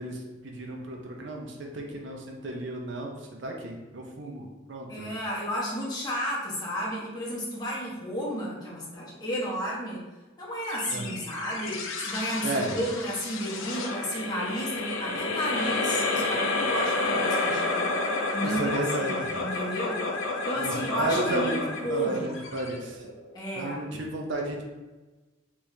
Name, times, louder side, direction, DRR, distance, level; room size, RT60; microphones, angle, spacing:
voice 1, 0.0-5.1 10.9-11.2 12.4-12.8 18.6-19.4 20.6-23.1 23.5-24.6, right 1 dB, 60° right, 1 dB, 0.5 m, -33 dB
voice 2, 4.9-10.0 10.4-18.0 18.3-20.1 20.4-22.4 23.3-23.8, equal, 20° left, -5 dB, 0.8 m, -32 dB
sound 1, 10.7-23.3, left 3 dB, 70° left, 0.5 m, -30 dB
3.4 x 3.0 x 2.6 m, 1.2 s
head